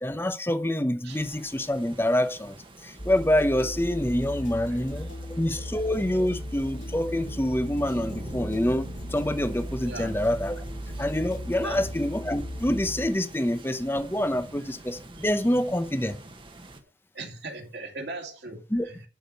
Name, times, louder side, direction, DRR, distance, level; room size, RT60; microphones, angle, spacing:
voice 1, 0.0-2.6 2.8-5.1 5.4-10.6 11.0-16.2 18.7-18.9, left 1 dB, 15° left, 0.8 m, -26 dB
sound 1, 1.1-16.8, right 1 dB, 30° right, 1.2 m, -45 dB
sound 2, 3.0-13.1, equal, 45° left, 2.6 m, -37 dB
voice 2, 4.6-5.2 5.5-5.6 9.8-10.2 11.6-11.9 15.2-15.7 17.1-19.0, right 2 dB, 70° right, 2.6 m, -40 dB
11.5 x 5.0 x 5.3 m
head